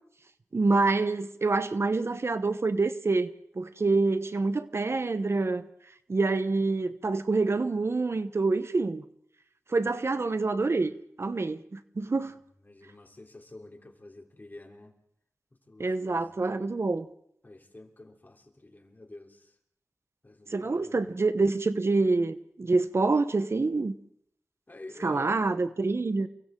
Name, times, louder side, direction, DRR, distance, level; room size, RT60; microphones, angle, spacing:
voice 1, 0.5-3.3 3.6-5.7 6.1-9.0 9.7-10.9 11.2-12.4 15.8-17.1 20.5-23.9 25.0-26.3, right 3 dB, 55° right, 1.0 m, -26 dB
voice 2, 12.6-15.0 15.5-16.3 17.4-19.6 20.2-21.2 24.7-25.4, left 2 dB, 35° left, 3.6 m, -49 dB
29.5 x 23.5 x 3.8 m
wide cardioid pair, 60°, 5 cm